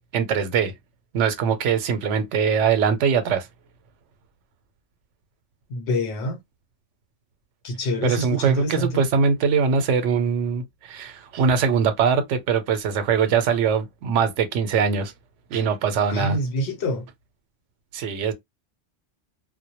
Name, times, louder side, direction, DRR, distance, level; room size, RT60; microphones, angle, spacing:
voice 1, 0.1-0.7 1.1-3.5 8.0-15.1 15.5-16.4 17.9-18.3, right 6 dB, 85° right, 0.9 m, -22 dB
voice 2, 5.7-6.4 7.6-9.1 16.1-17.1, left 1 dB, 70° left, 0.9 m, -26 dB
2.1 x 2.1 x 2.8 m
omnidirectional pair, 1.2 m